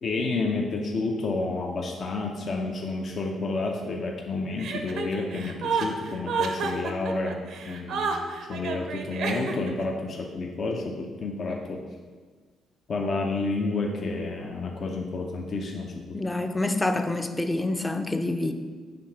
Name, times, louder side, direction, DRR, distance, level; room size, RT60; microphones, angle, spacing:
voice 1, 0.0-7.4 7.7-8.1 8.5-11.8 12.9-16.2, left 3 dB, 55° left, 1 dB, 0.7 m, -30 dB
Chuckle chortle, 4.6-9.8, right 5 dB, 75° right, 0.7 m, -30 dB
voice 2, 16.1-18.5, left 2 dB, 15° left, 7 dB, 0.5 m, -27 dB
6.9 x 3.4 x 5.7 m, 1.5 s
cardioid pair, 90°, 0 cm